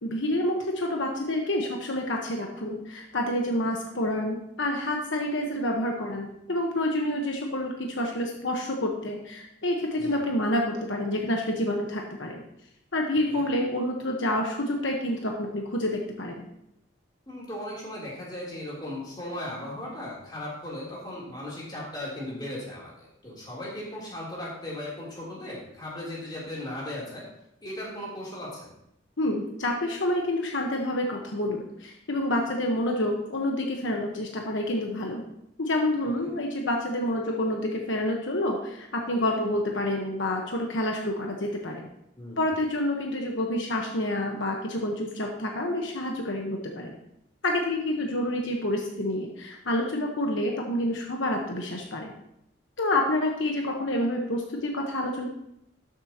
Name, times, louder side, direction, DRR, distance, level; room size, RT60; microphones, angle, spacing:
voice 1, 0.0-12.4 12.9-16.4 29.2-35.2 35.6-41.9 42.4-46.9 47.4-52.1 52.8-55.3, left 1 dB, 70° left, 1 dB, 1.2 m, -28 dB
voice 2, 17.3-27.2 27.6-28.7 42.2-42.5, left 1 dB, 20° left, -6 dB, 3.2 m, -37 dB
12.5 x 7.8 x 2.9 m, 0.80 s
head